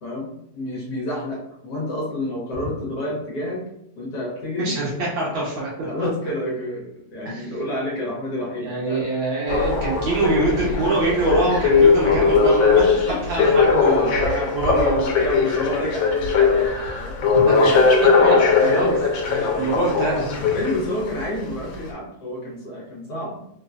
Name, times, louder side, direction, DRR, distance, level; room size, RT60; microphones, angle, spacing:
voice 1, 0.0-3.6 4.0-4.8 5.3-5.4 5.8-9.1 13.1-17.9 18.1-19.0 19.3-19.9 20.5-23.4, left 1 dB, 65° left, -4 dB, 1.4 m, -29 dB
voice 2, 4.6-5.9 7.3-7.5 8.6-12.8 13.3-15.0 17.3-17.6 18.2-18.3 18.6-19.0 19.5-20.5, right 2 dB, 90° right, -6 dB, 2.0 m, -24 dB
sound 1, 9.5-21.1 21.7-21.8, left 5 dB, 85° left, 1.3 m, -19 dB
4.2 x 2.2 x 2.4 m, 0.78 s
omnidirectional pair, 2.0 m